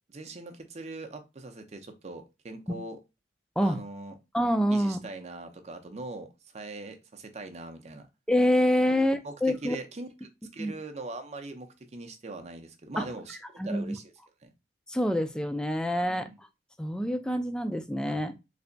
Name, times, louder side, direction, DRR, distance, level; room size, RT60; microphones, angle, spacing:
voice 1, 0.1-3.0 3.6-4.2 4.7-6.3 6.5-8.1 8.9-10.1 10.5-14.0 14.4-14.5 16.1-16.4 18.1-18.2, right 2 dB, 40° right, 0.6 m, -41 dB
voice 2, 4.3-5.0 8.3-9.8 10.6-10.7 13.0-13.1 13.6-14.0 14.9-16.3 16.8-18.3, equal, 5° left, 0.4 m, -26 dB
3.3 x 2.2 x 3.8 m
head